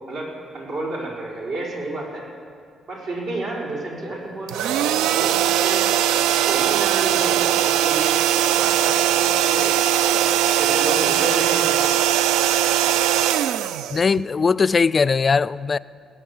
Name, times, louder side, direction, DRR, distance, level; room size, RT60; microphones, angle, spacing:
voice 1, 0.1-2.2 2.9-5.9 6.4-8.2 8.5-9.8 10.1-10.2 10.6-11.8, right 2 dB, 70° right, -3 dB, 4.5 m, -30 dB
sound 1, 4.5-14.5, right 11 dB, 90° right, 0.3 m, -20 dB
voice 2, 13.9-15.8, left 5 dB, 35° left, 19 dB, 0.3 m, -19 dB
19.0 x 8.2 x 7.2 m, 2.2 s
cardioid pair, 85°, 0 cm